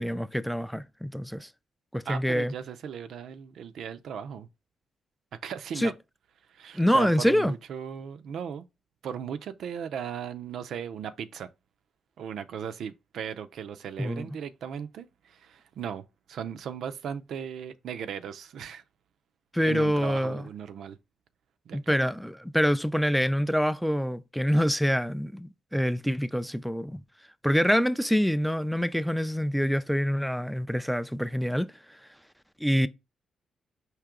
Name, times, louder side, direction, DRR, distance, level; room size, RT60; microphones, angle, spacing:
voice 1, 0.0-1.5 1.9-2.5 5.8-5.9 6.7-7.5 14.0-14.3 19.5-20.5 21.7-27.0 27.4-32.0 32.6-32.9, equal, ahead, 0.3 m, -26 dB
voice 2, 2.1-4.5 5.4-5.9 6.5-8.6 9.0-11.5 12.2-18.8 19.6-21.0 21.7-21.8, right 8 dB, 75° right, 0.4 m, -37 dB
4.7 x 2.8 x 3.6 m
cardioid pair, 70°, 0 cm